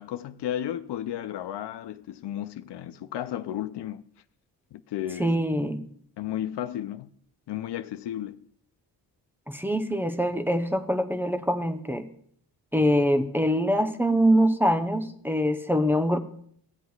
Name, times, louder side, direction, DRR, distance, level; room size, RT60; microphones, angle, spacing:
voice 1, 0.0-4.0 4.7-5.4 6.2-7.1 7.5-8.5, left 11 dB, 70° left, 0.5 m, -33 dB
voice 2, 5.2-5.8 9.5-12.0 12.7-16.2, equal, 5° right, 0.7 m, -24 dB
16.0 x 7.8 x 2.3 m
cardioid pair, 55°, 43 cm